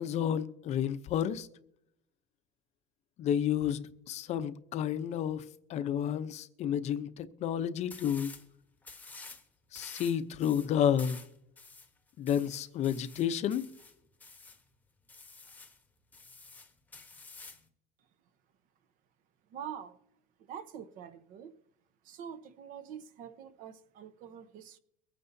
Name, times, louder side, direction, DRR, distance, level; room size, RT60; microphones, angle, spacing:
voice 1, 0.0-1.5 3.2-5.4 5.7-8.3 9.7-11.2 12.2-13.7, left 9 dB, 40° left, 0.7 m, -31 dB
sound 1, 7.9-8.5 8.8-9.4 9.7-14.6 15.1-15.8 16.1-17.7, left 3 dB, 10° left, 1.1 m, -50 dB
voice 2, 19.5-20.0 20.5-21.5 22.0-24.8, right 8 dB, 50° right, 1.0 m, -45 dB
24.0 x 9.4 x 2.7 m
cardioid pair, 155°, 18 cm